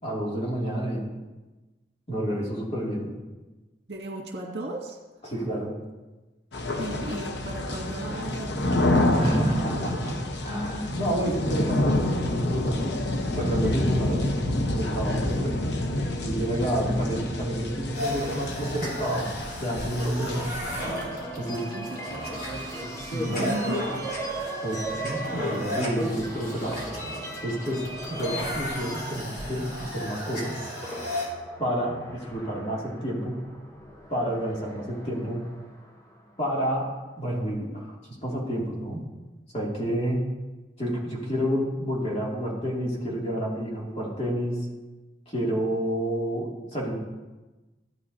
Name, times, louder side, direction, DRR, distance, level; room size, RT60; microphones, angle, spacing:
voice 1, 0.0-1.1 2.1-3.1 5.2-5.7 9.2-10.2 10.4-13.0 13.3-14.3 14.7-15.6 16.2-20.5 21.4-21.7 23.1-23.4 24.6-26.8 27.4-30.6 31.6-33.4 34.1-35.5 36.4-36.9 37.2-37.9 38.2-39.0 39.5-40.2 40.8-44.7 45.3-47.0, equal, 35° left, -4 dB, 2.5 m, -29 dB
voice 2, 3.9-5.0 6.8-8.7 11.3-11.4 21.5-22.5 23.3-23.9, right 2 dB, 70° right, -1 dB, 1.9 m, -35 dB
sound 1, 6.5-20.9, left 1 dB, 75° left, 0.9 m, -28 dB
sound 2, 17.9-31.3, equal, 55° left, 3.7 m, -33 dB
sound 3, 20.7-36.9, left 1 dB, 15° left, 0.9 m, -42 dB
14.0 x 9.4 x 2.7 m, 1.2 s
head